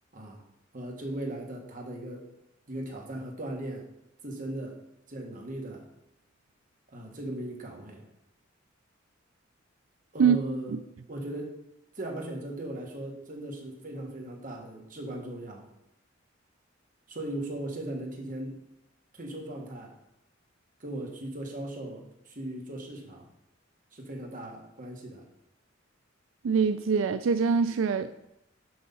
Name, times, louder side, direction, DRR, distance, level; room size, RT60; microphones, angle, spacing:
voice 1, 0.7-2.3 2.7-3.9 4.2-4.8 5.1-5.8 6.9-8.0 10.1-10.8 11.1-11.6 11.9-15.7 17.1-18.5 19.1-20.0 20.8-23.3 23.9-25.2, right 1 dB, 45° right, 0 dB, 1.7 m, -38 dB
voice 2, 26.4-28.3, right 6 dB, 85° right, 11 dB, 0.4 m, -24 dB
6.4 x 5.6 x 5.5 m, 0.88 s
head